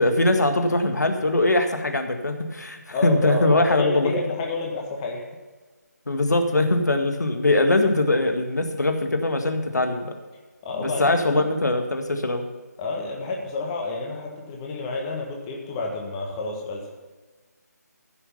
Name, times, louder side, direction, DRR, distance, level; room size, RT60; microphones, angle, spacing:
voice 1, 0.0-4.1 6.1-10.1 10.8-12.4, left 2 dB, 75° left, 5 dB, 1.8 m, -22 dB
voice 2, 2.9-5.3 10.6-11.5 12.8-16.9, left 3 dB, 15° left, 0 dB, 1.6 m, -29 dB
15.5 x 6.6 x 5.5 m, 1.3 s
figure-of-eight pair, 160°, 9 cm